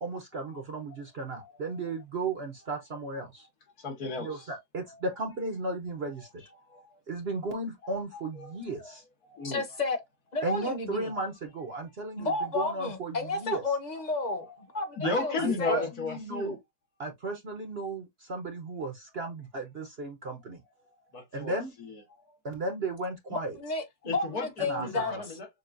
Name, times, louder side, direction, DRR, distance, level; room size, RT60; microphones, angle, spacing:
voice 1, 0.0-3.5 4.2-6.4 7.1-9.0 10.4-13.6 15.0-16.6 17.0-20.6 21.3-21.7 22.4-23.6 24.7-25.1, right 2 dB, 50° right, 0.9 m, -35 dB
voice 2, 1.4-1.8 3.8-4.5 4.8-5.0 6.5-7.0 7.8-8.9 9.2-9.8 11.1-11.2 12.3-12.6 14.4-16.6 20.9-22.4 24.0-25.5, left 3 dB, 70° left, 1.9 m, -36 dB
voice 3, 9.4-10.0 10.3-11.1 12.2-14.5 14.7-15.9 23.3-25.1, left 3 dB, 30° left, 1.1 m, -32 dB
6.7 x 2.4 x 2.5 m
omnidirectional pair, 1.7 m